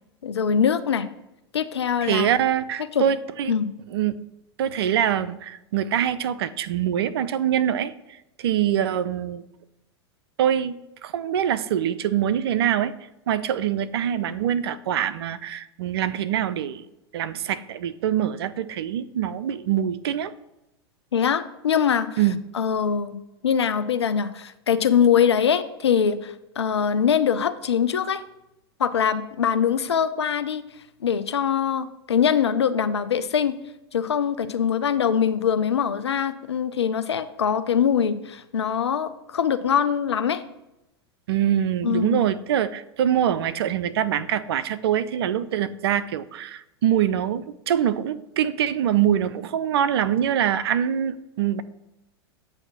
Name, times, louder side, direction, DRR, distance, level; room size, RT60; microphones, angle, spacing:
voice 1, 0.2-1.1 1.5-2.3 2.9-3.0 3.5-3.7 21.1-22.2 22.5-23.2 23.4-28.2 28.8-30.6 31.0-33.6 33.9-40.4 41.8-42.2, left 7 dB, 85° left, 12 dB, 0.5 m, -23 dB
voice 2, 2.0-3.5 3.9-4.2 4.6-9.4 10.4-12.9 13.3-16.8 17.1-20.3 22.2-22.4 41.3-51.6, right 10 dB, 70° right, 14 dB, 0.4 m, -24 dB
8.0 x 2.7 x 5.8 m, 0.90 s
hypercardioid pair, 95°, 14 cm